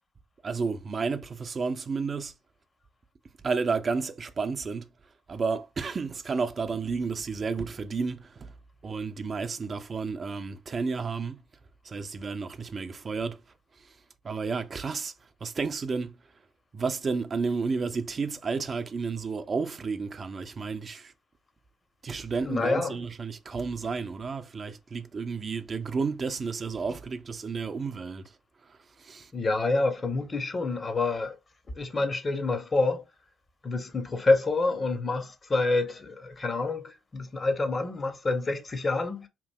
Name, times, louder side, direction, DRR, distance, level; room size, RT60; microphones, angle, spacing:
voice 1, 0.4-2.3 3.4-4.9 5.3-8.5 8.8-11.4 11.8-13.4 14.2-15.1 15.4-16.1 16.7-21.1 22.0-28.3 28.7-29.3, right 4 dB, 40° right, 0.3 m, -31 dB
voice 2, 22.4-22.9 29.3-31.4 31.7-33.0 33.6-39.3, left 3 dB, 35° left, 0.7 m, -27 dB
2.9 x 2.5 x 2.2 m
hypercardioid pair, 50°, 0 cm